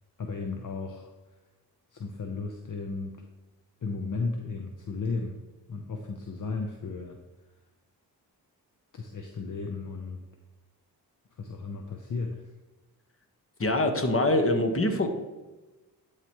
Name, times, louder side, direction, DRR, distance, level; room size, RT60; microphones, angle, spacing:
voice 1, 0.2-1.1 1.9-3.1 3.8-5.4 5.7-7.2 8.9-10.2 11.4-12.5, left 4 dB, 50° left, 3 dB, 0.9 m, -34 dB
voice 2, 13.6-15.1, left 1 dB, 30° left, 6 dB, 1.3 m, -24 dB
11.0 x 5.0 x 3.1 m, 1.1 s
cardioid pair, 50°, 41 cm